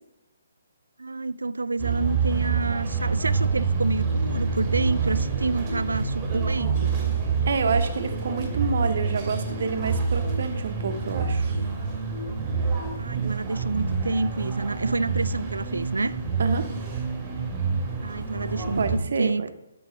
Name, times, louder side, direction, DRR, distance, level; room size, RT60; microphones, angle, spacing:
voice 1, 1.0-6.9 13.0-16.2 18.0-19.5, right 3 dB, 75° right, 0.3 m, -28 dB
sound 1, 1.8-19.0, right 5 dB, 20° right, 1.8 m, -27 dB
voice 2, 7.3-11.5 16.4-16.7 18.8-19.5, right 5 dB, 55° right, 0.9 m, -28 dB
12.0 x 4.7 x 3.7 m
figure-of-eight pair, 135°, 0 cm